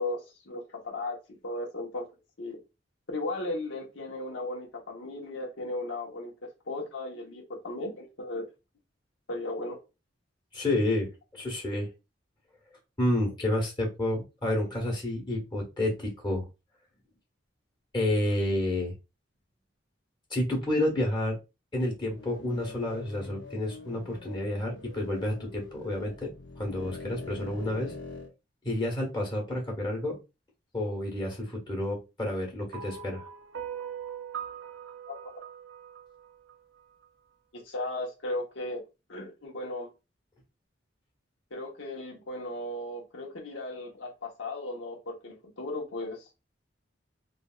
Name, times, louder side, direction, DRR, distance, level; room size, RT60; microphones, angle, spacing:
voice 1, 0.0-2.1 2.4-2.6 3.1-6.3 6.7-8.5 9.3-9.8 35.1-35.3 37.5-38.8 39.1-39.9 41.5-46.3, left 2 dB, 90° left, 1.1 m, -36 dB
voice 2, 10.5-11.9 13.0-16.5 17.9-18.9 20.3-21.4 21.7-26.3 26.6-28.0 28.6-30.2 30.7-33.2, left 1 dB, 25° left, 1.2 m, -30 dB
sound 1, 22.1-28.3, left 3 dB, 65° left, 0.7 m, -44 dB
sound 2, 32.7-37.1, right 8 dB, 85° right, 0.5 m, -41 dB
3.3 x 2.6 x 2.4 m
head